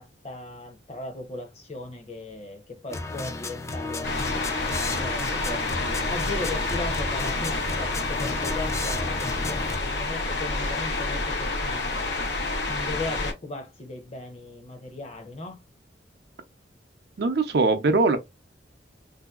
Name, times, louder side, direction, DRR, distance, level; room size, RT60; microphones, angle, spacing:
voice 1, 0.0-4.1 4.7-5.7 6.1-12.1 12.7-15.6, left 2 dB, 35° left, 0.7 m, -37 dB
sound 1, 2.9-9.8, left 3 dB, 15° left, 0.3 m, -33 dB
sound 2, 4.0-13.3, left 2 dB, 70° left, 0.8 m, -28 dB
voice 2, 17.2-18.2, right 3 dB, 60° right, 0.5 m, -21 dB
3.0 x 2.7 x 2.3 m
head